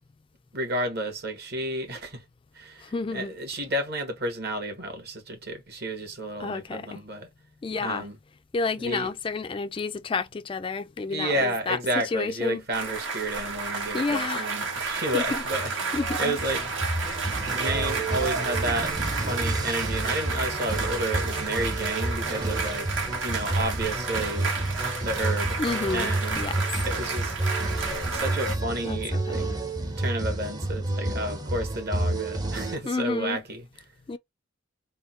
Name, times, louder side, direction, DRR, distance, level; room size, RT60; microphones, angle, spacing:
voice 1, 0.5-2.2 2.5-7.3 7.8-8.2 8.8-9.1 11.1-16.6 17.4-22.9 23.2-24.5 25.0-25.6 25.9-26.4 26.8-27.3 28.1-29.5 30.0-33.6, right 1 dB, 55° right, 1.4 m, -31 dB
voice 2, 2.8-3.3 6.4-7.0 7.6-8.1 8.5-12.6 13.9-14.5 15.1-15.4 15.9-16.4 25.6-26.6 28.8-29.6 32.9-33.4 34.1-34.2, left 4 dB, 25° left, 0.3 m, -30 dB
sound 1, 12.7-28.5, right 4 dB, 75° right, 1.4 m, -31 dB
sound 2, 15.1-32.8, right 2 dB, 20° right, 0.6 m, -30 dB
3.6 x 2.1 x 4.2 m
head